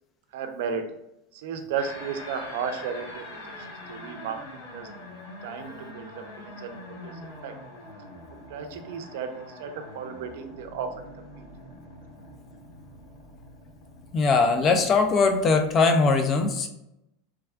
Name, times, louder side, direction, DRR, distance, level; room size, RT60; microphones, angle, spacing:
voice 1, 0.3-0.8 1.3-3.4 3.9-4.4 4.7-5.1 5.4-6.8 7.0-7.1 7.4-7.5 8.5-10.9 11.4-11.5, right 6 dB, 70° right, 7 dB, 0.5 m, -34 dB
sound 1, 1.8-15.7, left 1 dB, 65° left, 1.1 m, -44 dB
voice 2, 14.1-16.7, left 4 dB, 25° left, 6 dB, 0.4 m, -21 dB
3.4 x 2.3 x 3.3 m, 0.85 s
supercardioid pair, 160°, 0 cm